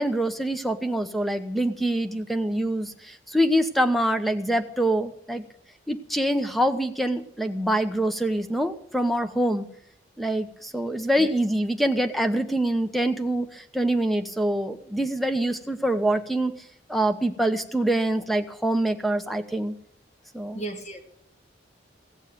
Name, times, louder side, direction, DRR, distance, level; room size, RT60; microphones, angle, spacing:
voice 1, 0.0-5.4 5.9-9.6 10.2-16.5 16.9-19.7 20.3-20.6, right 1 dB, ahead, 8 dB, 1.0 m, -25 dB
voice 2, 20.5-21.0, right 2 dB, 35° left, 4 dB, 2.3 m, -34 dB
16.5 x 7.3 x 8.9 m, 0.70 s
head